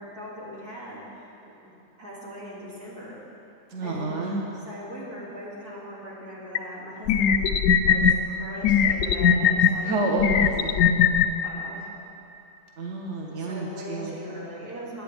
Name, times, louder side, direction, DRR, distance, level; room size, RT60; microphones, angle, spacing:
voice 1, 0.0-1.7 2.0-3.2 3.8-4.2 4.5-7.4 7.9-9.9 11.4-11.9 13.3-15.0, equal, 90° right, -7 dB, 3.3 m, -40 dB
voice 2, 3.7-4.4 9.8-10.8 12.8-14.1, right 2 dB, 50° right, -1 dB, 1.4 m, -29 dB
sound 1, 6.5-6.6 7.1-8.1 8.6-9.7 10.2-11.3, left 7 dB, 70° left, 0.9 m, -19 dB
20.5 x 9.2 x 3.5 m, 2.8 s
omnidirectional pair, 1.6 m